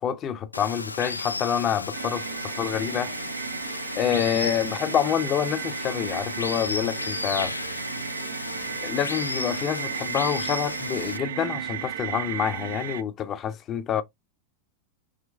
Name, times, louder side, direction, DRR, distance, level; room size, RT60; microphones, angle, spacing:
voice 1, 0.0-3.1 4.0-7.6 8.8-14.0, left 9 dB, 30° left, 0.7 m, -27 dB
Water, 0.5-11.2, left 3 dB, 80° left, 0.3 m, -34 dB
sound 1, 1.9-13.0, right 10 dB, 60° right, 0.5 m, -35 dB
5.1 x 3.2 x 3.3 m
figure-of-eight pair, 90°, 0 cm